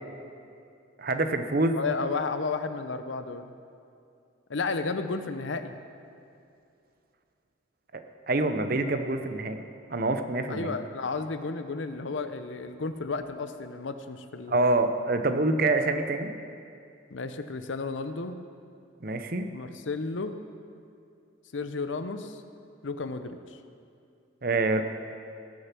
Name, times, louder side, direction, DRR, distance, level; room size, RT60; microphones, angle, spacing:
voice 1, 1.0-1.8 7.9-9.6 9.9-10.8 14.5-16.3 19.0-19.5 24.4-24.8, right 2 dB, 50° right, 8 dB, 0.7 m, -26 dB
voice 2, 1.8-3.5 4.5-5.7 10.5-14.8 17.1-18.4 19.5-20.4 21.5-22.4 22.8-23.6, left 4 dB, 70° left, 9 dB, 0.7 m, -33 dB
18.5 x 6.6 x 6.0 m, 2.5 s
head